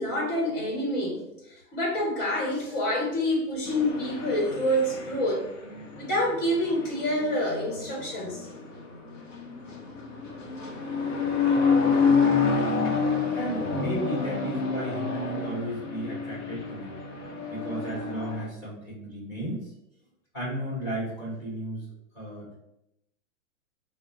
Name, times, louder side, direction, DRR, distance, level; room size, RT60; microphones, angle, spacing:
voice 1, 0.0-5.4 5.9-8.5, left 1 dB, 40° left, -3 dB, 1.3 m, -27 dB
sound 1, 3.7-18.5, left 5 dB, 60° left, 0.9 m, -29 dB
voice 2, 13.3-17.0 17.5-19.7 20.3-21.8 22.1-22.6, right 1 dB, 10° left, -7 dB, 1.1 m, -34 dB
3.5 x 2.1 x 4.0 m, 0.83 s
hypercardioid pair, 175°, 43 cm